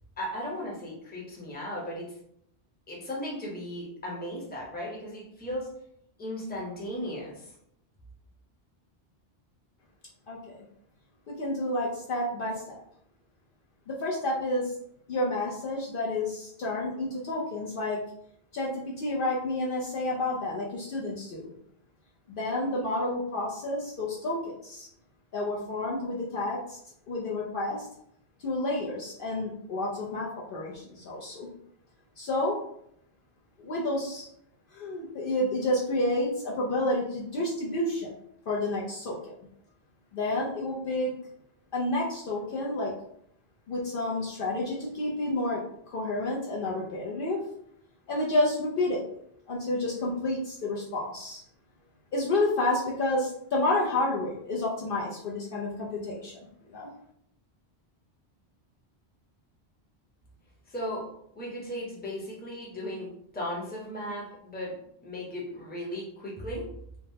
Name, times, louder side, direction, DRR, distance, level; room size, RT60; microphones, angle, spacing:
voice 1, 0.2-2.1 2.9-5.7 6.2-7.5 60.7-61.1 61.4-66.7, equal, 10° left, -4 dB, 0.7 m, -36 dB
voice 2, 10.3-10.6 11.3-12.8 13.9-14.7 15.1-18.0 18.5-21.5 22.3-24.9 25.3-26.8 27.1-27.9 28.4-31.5 32.2-32.6 33.6-34.3 34.7-38.1 38.5-39.3 40.1-41.1 41.7-42.9 43.7-47.4 48.1-49.0 49.5-51.4 52.1-56.4 56.7-56.9, left 2 dB, 60° left, -3 dB, 0.7 m, -30 dB
3.3 x 2.0 x 2.7 m, 0.72 s
omnidirectional pair, 1.1 m